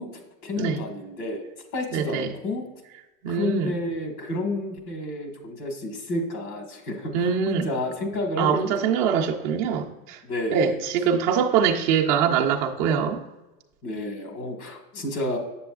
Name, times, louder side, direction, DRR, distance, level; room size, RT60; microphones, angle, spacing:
voice 1, 0.0-1.4 1.7-2.6 3.3-9.1 10.2-10.8 13.8-15.4, left 1 dB, 85° left, 4 dB, 1.7 m, -30 dB
voice 2, 1.9-2.3 3.2-3.8 7.1-7.7 8.4-10.2 10.5-13.2, right 7 dB, 30° right, 0 dB, 0.4 m, -23 dB
7.7 x 6.8 x 2.3 m, 1.0 s
supercardioid pair, 150°, 48 cm